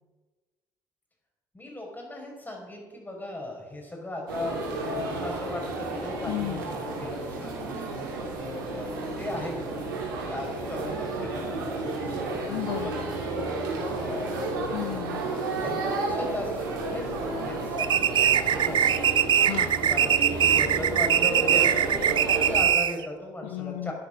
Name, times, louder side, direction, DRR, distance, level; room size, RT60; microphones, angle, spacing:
voice 1, 1.5-6.6 7.0-8.9 9.2-12.4 12.8-13.0 13.7-14.9 15.4-19.2 19.9-23.9, left 1 dB, 15° left, 1 dB, 5.4 m, -38 dB
sound 1, 4.3-22.6, right 2 dB, 80° right, 3.0 m, -32 dB
voice 2, 6.3-6.7 12.5-13.1 14.7-15.2 19.4-19.8 23.4-23.9, left 16 dB, 70° left, 14 dB, 0.8 m, -34 dB
sound 2, 17.8-23.1, right 9 dB, 45° right, 0.6 m, -22 dB
12.5 x 9.6 x 6.2 m, 1.2 s
hypercardioid pair, 50°, 11 cm